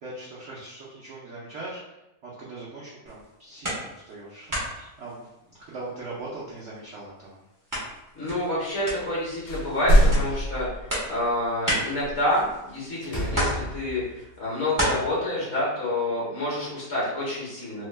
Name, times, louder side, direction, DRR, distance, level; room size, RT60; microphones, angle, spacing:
voice 1, 0.0-5.3 5.6-7.4, right 2 dB, 70° right, -7 dB, 0.6 m, -40 dB
sound 1, 3.1-4.2 4.5-6.0 6.4-12.9 13.3-14.9, equal, 30° right, 0.3 m, -33 dB
voice 2, 8.1-17.9, left 1 dB, 50° left, -6 dB, 0.9 m, -28 dB
Slam, 9.2-10.2 12.3-12.6 13.0-14.2, equal, 15° left, 0.6 m, -34 dB
sound 2, 9.5-11.1 12.0-12.1, equal, 75° left, 1.2 m, -21 dB
3.0 x 2.1 x 3.2 m, 0.93 s
omnidirectional pair, 2.0 m